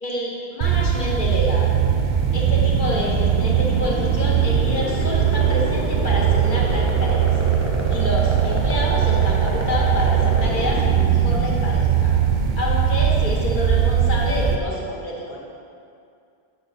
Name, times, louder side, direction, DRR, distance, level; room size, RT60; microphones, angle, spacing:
voice 1, 0.0-1.8 2.3-7.3 7.9-12.1 12.6-15.4, left 1 dB, 50° left, -4 dB, 1.5 m, -28 dB
sound 1, 0.6-14.6, right 9 dB, 55° right, 0.6 m, -20 dB
sound 2, 0.9-14.6, right 1 dB, 15° right, 0.8 m, -27 dB
8.5 x 5.2 x 4.2 m, 2.4 s
omnidirectional pair, 1.0 m